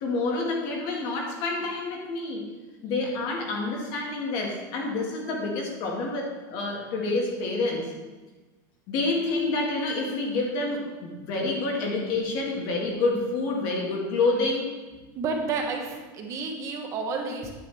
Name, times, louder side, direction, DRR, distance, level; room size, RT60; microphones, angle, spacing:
voice 1, 0.0-2.4 2.8-7.9 8.9-14.7, left 3 dB, 45° left, 0 dB, 1.9 m, -28 dB
voice 2, 15.1-17.5, right 4 dB, 30° right, 2 dB, 1.1 m, -31 dB
9.3 x 8.2 x 3.5 m, 1.2 s
supercardioid pair, 170°, 10 cm